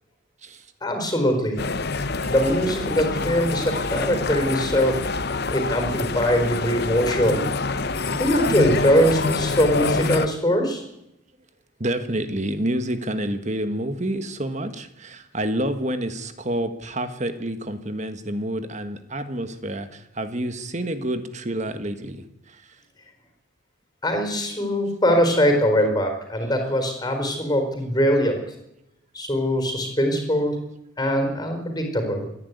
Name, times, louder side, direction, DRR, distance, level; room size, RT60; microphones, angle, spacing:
voice 1, 0.8-1.6 2.2-5.0 5.5-7.4 8.1-10.8 24.0-28.4 29.1-30.6 31.0-32.3, equal, 20° left, 5 dB, 4.4 m, -22 dB
sound 1, 1.6-10.3, left 3 dB, 50° left, 0.9 m, -26 dB
voice 2, 2.2-2.7 11.8-22.6 26.4-26.5, right 1 dB, 35° right, 9 dB, 1.6 m, -29 dB
26.0 x 10.5 x 9.5 m, 0.85 s
head